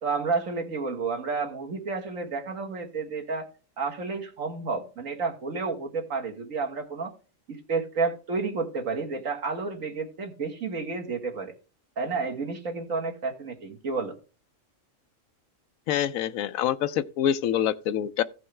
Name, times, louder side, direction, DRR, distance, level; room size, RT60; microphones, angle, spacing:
voice 1, 0.0-3.5 3.8-7.1 7.5-11.5 12.0-14.2, right 4 dB, 75° right, 1.9 m, -31 dB
voice 2, 15.9-18.2, left 10 dB, 85° left, 1.0 m, -26 dB
15.5 x 5.5 x 3.2 m
omnidirectional pair, 1.4 m